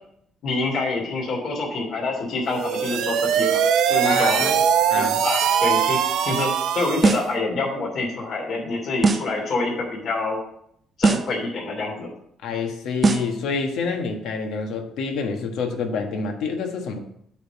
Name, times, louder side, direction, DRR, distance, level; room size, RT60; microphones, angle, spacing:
voice 1, 0.4-3.6 3.9-4.5 4.9-6.5 6.7-10.4 11.0-12.1, left 3 dB, 45° left, -3 dB, 2.9 m, -26 dB
sound 1, 2.5-7.3, right 9 dB, 70° right, 0.6 m, -21 dB
voice 2, 4.0-4.6 4.9-5.2 12.4-17.0, left 4 dB, 70° left, 3 dB, 1.4 m, -27 dB
sound 2, 7.0-7.4 9.0-9.4 11.0-11.4 13.0-13.4, right 4 dB, 25° right, 0.5 m, -20 dB
9.0 x 3.7 x 7.0 m, 0.71 s
cardioid pair, 150°, 0 cm